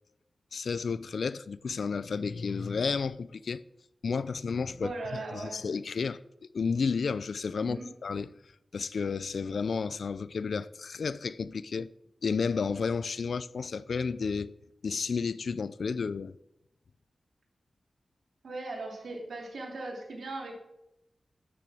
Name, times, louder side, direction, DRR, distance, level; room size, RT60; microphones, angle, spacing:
voice 1, 0.5-3.6 4.0-6.2 6.5-8.3 8.7-11.9 12.2-14.5 14.8-16.4, left 5 dB, 80° left, 0.4 m, -32 dB
voice 2, 4.8-5.6 7.6-7.9 13.2-13.3 18.4-20.5, right 2 dB, 90° right, 2.9 m, -38 dB
12.0 x 7.0 x 4.9 m
wide cardioid pair, 100°, 0 cm